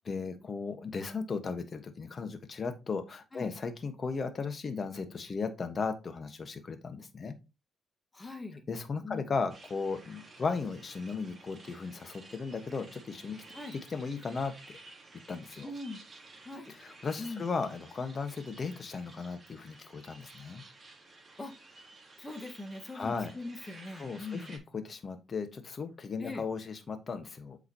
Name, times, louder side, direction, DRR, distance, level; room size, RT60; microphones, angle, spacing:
voice 1, 0.1-7.4 8.7-13.4 13.7-14.5 15.3-15.7 16.7-20.6 22.9-23.3 23.9-27.6, left 4 dB, 40° left, 8 dB, 1.3 m, -36 dB
voice 2, 8.1-8.6 9.0-9.3 13.5-13.7 15.6-16.0 16.4-16.7 17.2-17.4 21.4-21.5 22.2-24.5 26.2-26.4, left 3 dB, 20° left, 5 dB, 1.6 m, -41 dB
sound 1, 9.5-24.6, right 3 dB, 30° right, 3.6 m, -54 dB
8.0 x 4.8 x 2.9 m, 0.27 s
cardioid pair, 90°, 0 cm